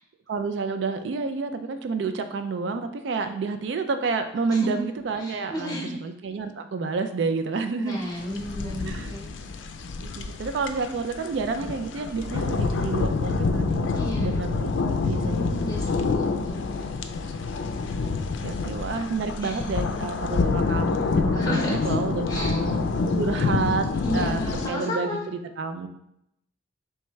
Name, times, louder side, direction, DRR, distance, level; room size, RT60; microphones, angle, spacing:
voice 1, 0.3-8.1 8.8-9.2 10.0-16.4 18.4-22.8 23.2-23.9 24.1-25.9, right 4 dB, 70° right, 8 dB, 0.4 m, -30 dB
voice 2, 5.2-5.9 7.8-9.3 13.9-14.4 15.2-16.9 19.4-19.6 21.3-21.8 22.3-22.5 23.9-25.2, left 1 dB, 20° left, -2 dB, 1.0 m, -33 dB
sound 1, 8.2-24.7, left 4 dB, 85° left, 0.4 m, -27 dB
3.3 x 3.1 x 4.5 m, 0.80 s
head